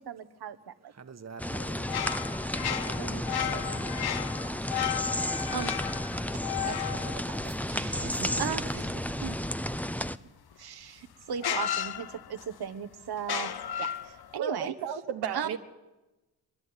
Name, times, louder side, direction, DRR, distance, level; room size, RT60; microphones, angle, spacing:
voice 1, 0.0-0.9 2.6-5.7 6.6-7.4 7.6-8.8 9.2-9.4 10.6-13.5 13.8-14.7 15.3-15.6, right 8 dB, 70° right, 1.3 m, -38 dB
voice 2, 0.9-2.3 7.2-9.3, right 5 dB, 40° right, 1.4 m, -45 dB
sound 1, 1.4-10.2, left 1 dB, 5° left, 0.8 m, -32 dB
sound 2, 1.6-8.2 10.5-10.6 11.4-12.6 13.2-14.4, left 10 dB, 70° left, 1.0 m, -34 dB
voice 3, 14.3-15.6, right 7 dB, 85° right, 1.2 m, -34 dB
26.0 x 11.0 x 9.7 m
supercardioid pair, 50°, 40 cm